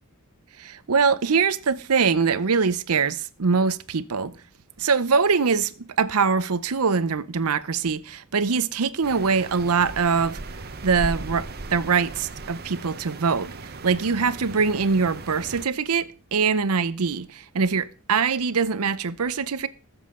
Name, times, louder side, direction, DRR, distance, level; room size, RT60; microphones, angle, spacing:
voice 1, 0.6-4.3 4.8-10.4 10.8-13.5 13.8-19.7, right 5 dB, 85° right, 0.7 m, -23 dB
sound 1, 9.0-15.7, right 3 dB, 45° right, 0.9 m, -37 dB
20.0 x 7.2 x 3.7 m
head